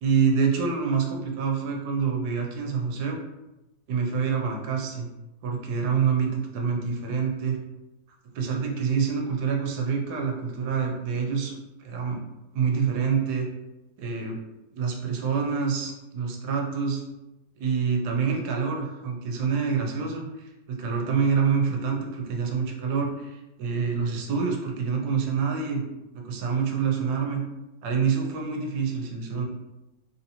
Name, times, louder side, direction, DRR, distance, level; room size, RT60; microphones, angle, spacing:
voice 1, 0.0-3.2 3.9-5.1 5.4-7.6 8.3-12.2 12.5-13.5 14.0-14.4 14.7-17.0 17.6-25.8 26.1-27.4 27.8-29.5, right 6 dB, 85° right, 1 dB, 1.2 m, -26 dB
3.4 x 2.7 x 2.8 m, 0.99 s
omnidirectional pair, 1.7 m